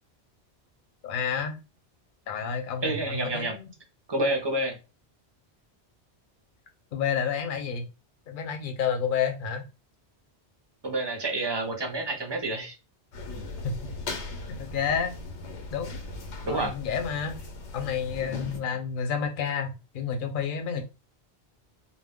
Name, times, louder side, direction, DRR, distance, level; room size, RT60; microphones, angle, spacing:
voice 1, 1.0-1.6 2.3-3.7 6.9-7.9 8.3-9.6 13.6-13.9 14.5-15.2 15.7-16.0 16.5-17.4 17.7-20.8, left 7 dB, 55° left, 5 dB, 0.7 m, -30 dB
voice 2, 2.8-3.6 4.1-4.8 10.8-12.8 16.4-16.7, right 2 dB, 35° right, 3 dB, 0.4 m, -28 dB
sound 1, 13.1-18.6, left 2 dB, 90° left, 1.0 m, -38 dB
2.3 x 2.1 x 3.5 m, 0.28 s
omnidirectional pair, 1.1 m